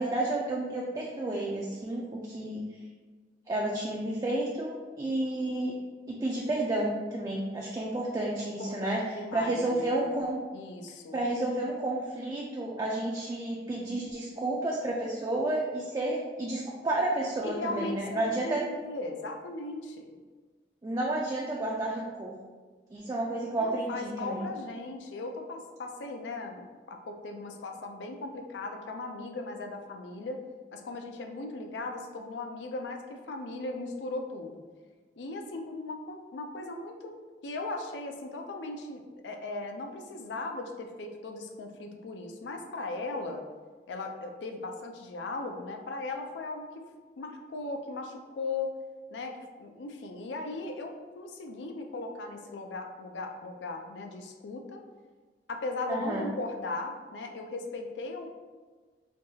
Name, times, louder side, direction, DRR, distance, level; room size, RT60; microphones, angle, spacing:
voice 1, 0.0-2.6 3.5-5.7 6.1-9.0 9.3-10.4 11.1-18.6 20.8-22.3 22.9-24.4 55.9-56.3, right 2 dB, 20° right, -3 dB, 0.3 m, -31 dB
voice 2, 8.4-10.2 10.5-11.2 17.4-20.1 23.6-30.4 30.7-34.6 35.2-37.2 37.4-43.5 43.9-46.9 47.2-48.7 49.1-54.8 55.5-58.3, left 2 dB, 80° left, 4 dB, 0.4 m, -38 dB
4.5 x 2.3 x 2.7 m, 1.4 s
head